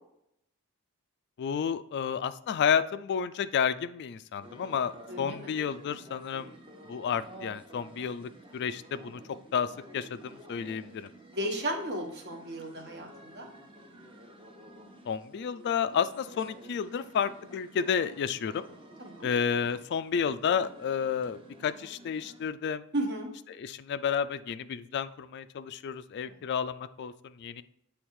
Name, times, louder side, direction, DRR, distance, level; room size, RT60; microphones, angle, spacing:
voice 1, 1.4-6.5 6.9-9.2 9.5-11.1 15.1-18.6 19.2-22.8 23.5-27.6, left 7 dB, 50° left, 13 dB, 0.3 m, -31 dB
sound 1, 4.4-22.5, right 1 dB, 25° right, 1.0 m, -51 dB
voice 2, 5.1-5.5 11.3-13.5 19.0-19.3 22.9-23.3 26.2-26.4, right 1 dB, 50° right, 3 dB, 1.3 m, -34 dB
8.1 x 3.4 x 4.7 m, 0.74 s
head